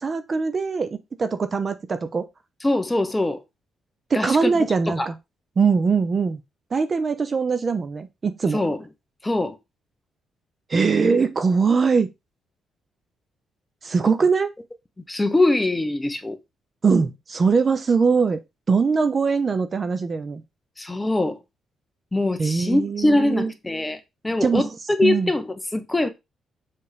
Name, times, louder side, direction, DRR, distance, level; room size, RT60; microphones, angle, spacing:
voice 1, 0.0-2.3 4.1-5.1 5.6-6.4 6.7-8.6 10.7-12.1 13.8-14.5 16.8-18.4 18.7-20.4 22.4-23.5 24.4-24.7 25.0-25.3, right 5 dB, 30° right, 0.7 m, -21 dB
voice 2, 2.6-3.4 4.1-4.5 4.9-5.1 8.5-8.8 9.2-9.6 15.1-16.4 20.8-21.4 22.1-24.7 25.0-26.1, left 2 dB, 10° left, 0.8 m, -23 dB
7.0 x 3.5 x 5.0 m
cardioid pair, 155°, 0 cm